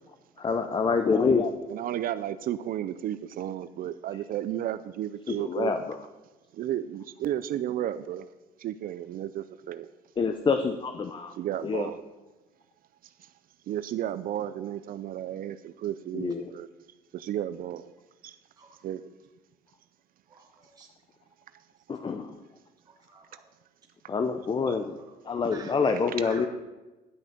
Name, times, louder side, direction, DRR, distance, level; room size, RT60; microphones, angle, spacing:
voice 1, 0.4-1.5 5.3-6.0 10.2-11.3 11.6-11.9 16.1-16.5 21.9-22.4 24.1-25.0 25.2-26.5, left 5 dB, 30° left, 8 dB, 0.7 m, -26 dB
voice 2, 1.7-5.7 6.6-8.3 8.6-9.9 11.4-12.0 13.7-16.7 17.1-17.9 18.2-18.4 18.8-19.0 24.7-24.8, right 11 dB, 60° right, 13 dB, 0.5 m, -33 dB
voice 3, 20.3-20.9 23.1-23.4 25.5-25.9 26.2-26.5, right 4 dB, 20° right, 0 dB, 1.4 m, -47 dB
11.0 x 6.1 x 6.7 m, 1.1 s
cardioid pair, 110°, 17 cm